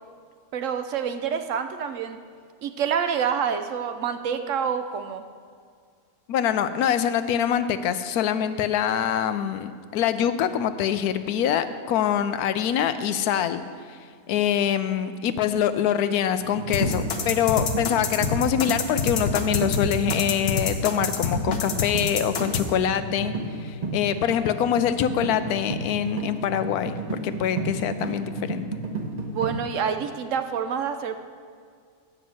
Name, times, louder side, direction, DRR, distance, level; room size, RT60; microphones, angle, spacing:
voice 1, 0.5-2.2 2.6-5.2 29.3-31.2, right 7 dB, 65° right, 9 dB, 0.9 m, -27 dB
voice 2, 6.3-13.6 13.9-14.0 14.3-23.3 23.6-27.0 27.2-28.6, left 9 dB, 90° left, 11 dB, 1.1 m, -24 dB
sound 1, 16.4-29.6, right 3 dB, 30° right, 1.1 m, -33 dB
sound 2, 16.7-22.6, left 5 dB, 50° left, 1.0 m, -26 dB
9.4 x 6.3 x 7.5 m, 2.1 s
omnidirectional pair, 1.6 m